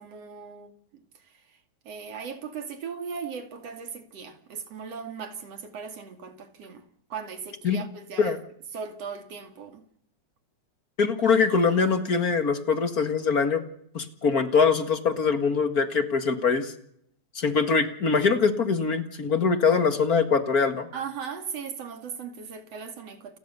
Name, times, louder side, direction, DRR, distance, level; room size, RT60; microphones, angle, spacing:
voice 1, 0.0-1.3 1.8-6.8 7.1-8.4 8.7-9.8 20.9-23.4, right 6 dB, 55° right, 3.4 m, -38 dB
voice 2, 11.0-13.6 13.9-16.7 17.4-20.9, left 5 dB, 35° left, 1.8 m, -23 dB
29.5 x 15.5 x 6.8 m
omnidirectional pair, 3.3 m